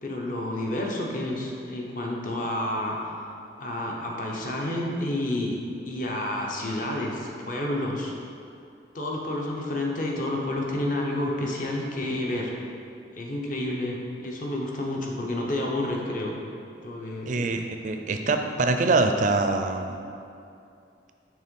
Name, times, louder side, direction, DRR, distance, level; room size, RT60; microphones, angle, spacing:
voice 1, 0.0-3.0 3.6-5.6 5.9-8.1 8.9-12.5 13.2-16.3 16.8-17.5, left 1 dB, 45° left, -1 dB, 0.8 m, -30 dB
voice 2, 17.3-20.0, right 3 dB, 40° right, 6 dB, 0.4 m, -24 dB
6.6 x 3.6 x 5.3 m, 2.5 s
head